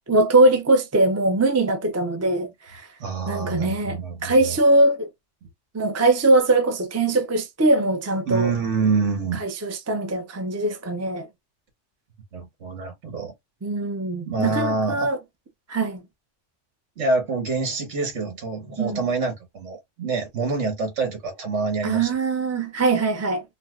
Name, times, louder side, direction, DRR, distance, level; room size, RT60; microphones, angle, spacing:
voice 1, 0.1-2.9 3.3-5.1 5.7-8.5 9.4-11.3 13.6-15.2 15.7-16.0 18.8-19.0 21.8-23.4, right 2 dB, 20° right, 0.4 m, -21 dB
voice 2, 3.0-4.6 8.2-9.4 12.3-13.3 14.2-15.1 17.0-22.1, right 4 dB, 70° right, 1.5 m, -26 dB
4.1 x 2.2 x 2.3 m
omnidirectional pair, 1.3 m